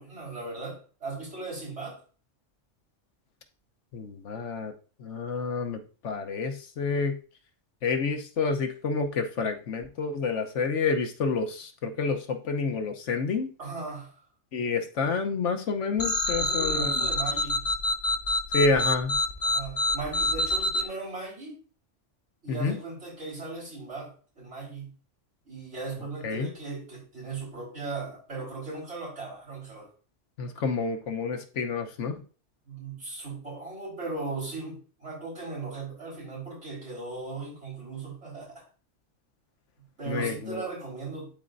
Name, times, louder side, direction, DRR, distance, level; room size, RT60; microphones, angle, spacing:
voice 1, 0.0-2.0 13.6-14.1 16.4-17.7 19.4-21.6 22.4-24.9 25.4-29.9 32.7-38.7 39.8-41.3, right 3 dB, 65° right, -3 dB, 4.4 m, -38 dB
voice 2, 3.9-4.7 5.0-7.2 7.8-13.5 14.5-17.1 18.5-19.2 22.5-22.7 26.2-26.5 30.4-32.2 40.1-40.6, left 4 dB, 75° left, 5 dB, 1.2 m, -29 dB
sound 1, 16.0-20.8, left 1 dB, 40° left, 0.5 m, -26 dB
12.0 x 4.3 x 2.6 m, 0.38 s
omnidirectional pair, 1.3 m